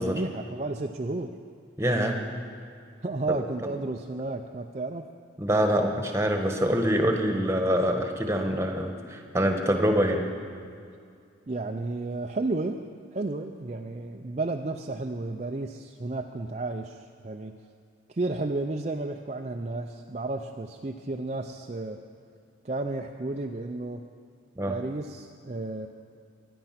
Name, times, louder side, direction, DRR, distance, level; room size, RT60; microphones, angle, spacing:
voice 1, 0.0-1.3 3.0-5.1 11.5-12.8 13.1-17.5 18.1-22.0 22.6-24.0 24.7-25.9, right 2 dB, 35° right, 4 dB, 0.5 m, -32 dB
voice 2, 1.8-2.2 3.3-3.4 5.4-10.2 24.6-24.7, equal, 15° right, 3 dB, 1.3 m, -25 dB
23.0 x 10.0 x 5.9 m, 2.3 s
head